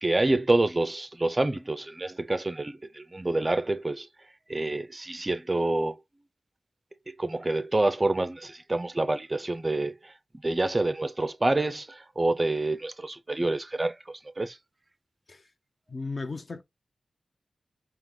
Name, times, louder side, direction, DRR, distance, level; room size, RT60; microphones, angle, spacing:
voice 1, 0.0-4.1 4.5-6.0 7.1-10.1 10.4-14.6, right 2 dB, 25° right, 0.4 m, -27 dB
voice 2, 15.9-16.6, left 3 dB, 40° left, 0.6 m, -35 dB
3.5 x 2.9 x 3.6 m
wide cardioid pair, 105°, 0 cm